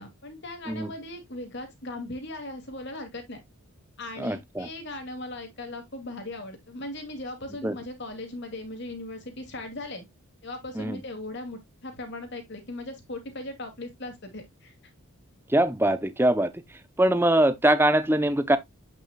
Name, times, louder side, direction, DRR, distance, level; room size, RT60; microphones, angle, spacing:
voice 1, 0.0-3.4 4.0-10.1 10.4-14.7, left 2 dB, 50° left, 2.4 m, -38 dB
voice 2, 4.2-4.7 7.6-7.7 10.8-11.0 15.5-16.5 17.0-18.6, right 1 dB, 10° right, 0.6 m, -22 dB
8.5 x 6.0 x 2.3 m
head